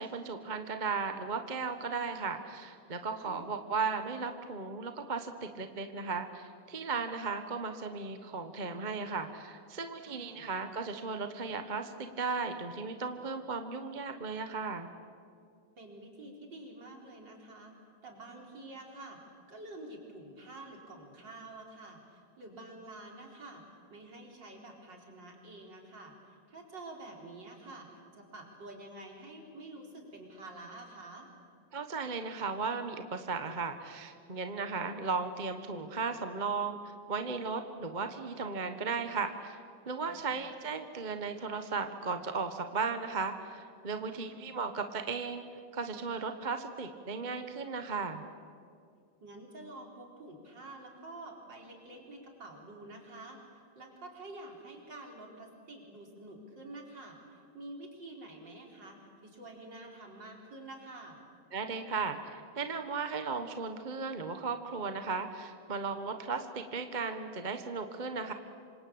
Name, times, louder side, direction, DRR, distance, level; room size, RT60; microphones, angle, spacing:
voice 1, 0.0-14.9 31.7-45.4 45.7-48.2 61.5-68.3, right 4 dB, 25° right, 7 dB, 1.1 m, -36 dB
voice 2, 3.1-3.5 10.0-10.5 15.8-17.7 18.0-19.2 19.5-23.6 23.9-31.3 40.0-40.4 44.1-44.5 49.2-53.4 53.7-61.2, right 2 dB, 55° right, 1 dB, 5.0 m, -48 dB
27.0 x 25.5 x 8.7 m, 2.3 s
omnidirectional pair, 2.4 m